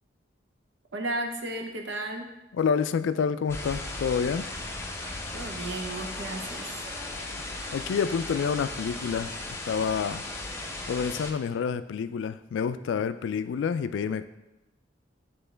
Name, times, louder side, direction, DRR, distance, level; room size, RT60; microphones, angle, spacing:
voice 1, 0.9-2.3 5.3-6.8, right 2 dB, 70° right, 3 dB, 0.8 m, -34 dB
voice 2, 2.5-4.5 7.7-9.4 9.6-10.2 10.9-14.2, left 6 dB, 75° left, 12 dB, 0.3 m, -28 dB
sound 1, 3.5-11.3, left 2 dB, 15° left, 0.6 m, -36 dB
sound 2, 5.8-9.0, equal, 40° right, 2.3 m, -49 dB
9.2 x 3.8 x 3.3 m, 0.98 s
head